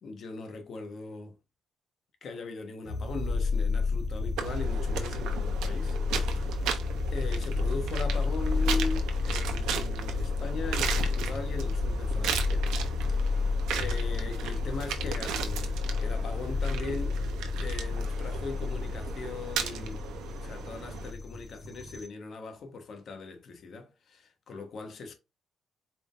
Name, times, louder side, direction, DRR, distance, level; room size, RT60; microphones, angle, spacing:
voice 1, 0.0-1.4 2.2-6.7 7.1-12.7 13.3-17.2 17.6-20.1 20.4-25.1, left 3 dB, 60° left, 1.2 m, -40 dB
sound 1, 2.8-22.1, left 4 dB, 40° left, 1.4 m, -31 dB
sound 2, 4.4-21.1, right 8 dB, 90° right, 0.8 m, -37 dB
4.6 x 3.6 x 2.5 m
cardioid pair, 90°, 0 cm